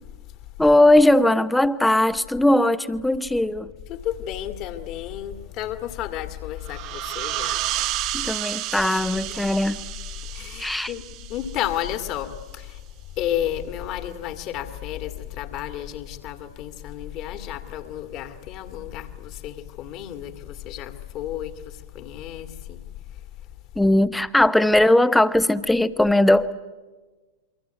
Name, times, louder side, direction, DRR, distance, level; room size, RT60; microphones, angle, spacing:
voice 1, 0.6-3.7 8.1-9.8 10.6-10.9 23.8-26.5, left 1 dB, 5° left, 1.0 m, -19 dB
voice 2, 3.9-7.6 10.3-11.0 11.3-12.8 13.2-22.8, left 11 dB, 40° left, 2.1 m, -32 dB
sound 1, 6.6-12.0, right 16 dB, 40° right, 0.8 m, -31 dB
28.0 x 24.0 x 8.2 m
figure-of-eight pair, 90°, 0 cm